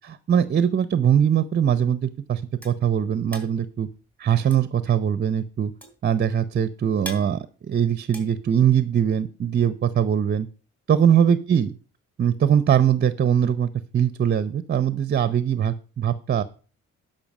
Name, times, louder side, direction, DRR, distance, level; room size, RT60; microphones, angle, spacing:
voice 1, 0.0-3.9 4.2-5.7 6.0-10.5 10.9-11.7 12.2-16.4, right 9 dB, 35° right, 14 dB, 0.6 m, -21 dB
sound 1, 2.1-9.1, right 1 dB, 5° left, 3.1 m, -43 dB
12.0 x 5.4 x 5.3 m, 0.38 s
cardioid pair, 90°, 30 cm